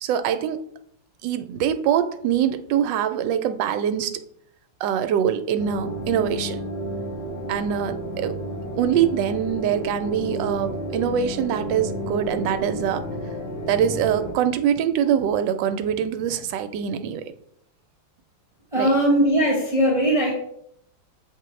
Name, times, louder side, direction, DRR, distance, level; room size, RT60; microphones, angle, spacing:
voice 1, 0.0-0.6 1.2-4.2 4.8-6.6 7.5-8.4 8.8-13.0 13.7-17.2 18.8-18.9, right 9 dB, 75° right, 9 dB, 1.2 m, -24 dB
sound 1, 5.6-14.3, equal, 65° left, 0.6 m, -31 dB
voice 2, 18.7-20.3, right 1 dB, 20° right, -5 dB, 1.1 m, -19 dB
7.3 x 4.1 x 3.2 m, 0.71 s
omnidirectional pair, 2.2 m